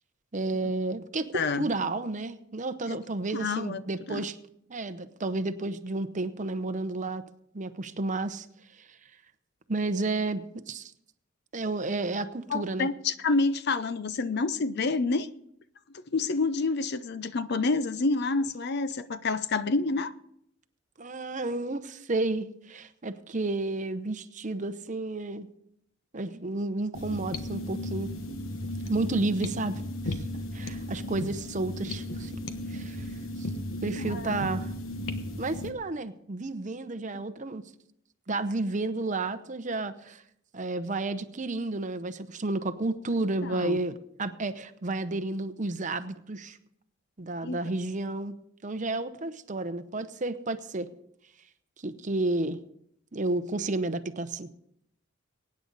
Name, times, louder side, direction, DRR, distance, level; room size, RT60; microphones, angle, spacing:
voice 1, 0.3-4.4 4.7-7.2 7.5-8.5 8.8-8.9 9.7-10.9 11.5-12.9 21.0-25.5 26.1-28.1 28.9-30.2 30.5-32.4 32.7-33.1 33.4-33.5 33.8-34.7 35.4-37.6 38.3-40.2 40.5-43.9 44.2-46.6 47.2-48.4 48.6-50.9 51.8-52.6 53.1-54.5, right 2 dB, 40° right, 0.8 m, -31 dB
voice 2, 1.3-1.7 2.9-3.0 3.3-3.8 4.1-4.2 12.5-15.3 15.9-20.1 34.0-34.4 37.1-37.2 43.4-43.8 47.4-47.6, left 3 dB, 55° left, 0.6 m, -28 dB
sound 1, 26.9-35.7, left 1 dB, 85° left, 1.2 m, -35 dB
23.0 x 9.5 x 4.0 m
head